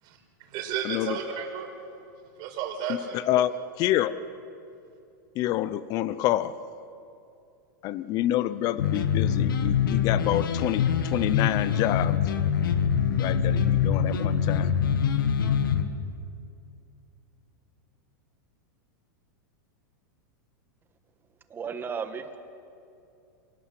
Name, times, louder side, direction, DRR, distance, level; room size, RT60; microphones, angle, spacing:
voice 1, 0.0-1.7 2.4-3.3, right 7 dB, 40° right, 3 dB, 5.1 m, -33 dB
voice 2, 3.1-3.5 3.8-4.2 5.4-6.6 7.8-12.2 13.2-14.7, left 13 dB, 35° left, 16 dB, 0.7 m, -27 dB
sound 1, 8.8-15.8, left 8 dB, 90° left, 1.9 m, -24 dB
voice 3, 21.5-22.4, right 6 dB, 20° right, 8 dB, 1.5 m, -34 dB
27.0 x 18.5 x 7.8 m, 2.6 s
supercardioid pair, 145°, 11 cm